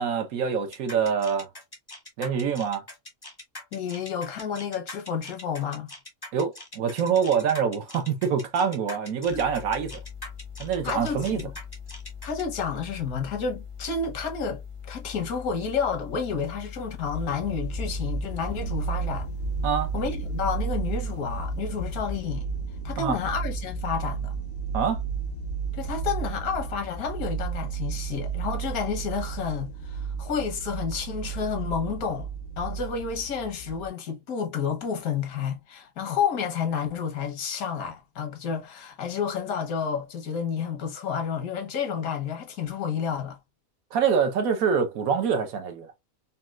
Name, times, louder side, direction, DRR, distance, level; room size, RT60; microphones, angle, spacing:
voice 1, 0.0-1.5 2.2-2.8 6.3-10.0 10.6-11.4 19.6-19.9 23.0-23.2 24.7-25.0 43.9-45.9, right 6 dB, 75° right, 1.2 m, -25 dB
sound 1, 0.7-12.4, left 1 dB, 25° left, 0.5 m, -42 dB
voice 2, 3.7-5.9 9.3-9.5 10.8-11.5 12.2-19.3 19.9-22.5 22.8-24.3 25.7-32.3 32.6-43.4, left 6 dB, 80° left, 1.3 m, -30 dB
sound 2, 9.3-22.2, left 7 dB, 40° right, 0.4 m, -42 dB
sound 3, 17.1-33.9, right 5 dB, 65° left, 0.7 m, -32 dB
4.1 x 2.3 x 2.3 m
omnidirectional pair, 1.5 m